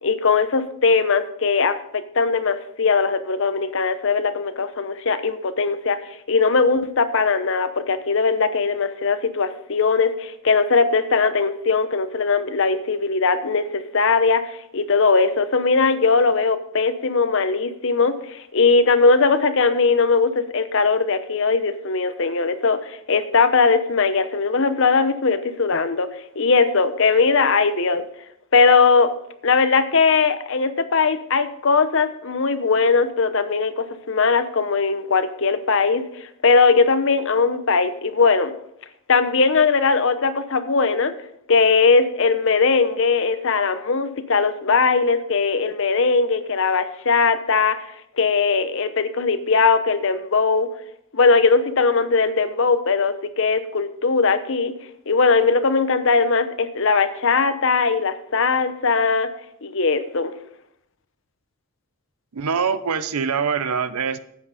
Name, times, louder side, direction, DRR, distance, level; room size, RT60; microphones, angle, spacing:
voice 1, 0.0-26.1 26.4-28.0 28.5-29.1 29.4-38.5 39.1-41.1 41.5-47.8 48.2-50.7 51.1-54.7 55.1-59.3 59.6-60.3, left 4 dB, 60° left, 11 dB, 0.8 m, -19 dB
voice 2, 62.3-64.2, right 6 dB, 85° right, 14 dB, 0.7 m, -24 dB
9.6 x 8.5 x 5.0 m, 0.74 s
head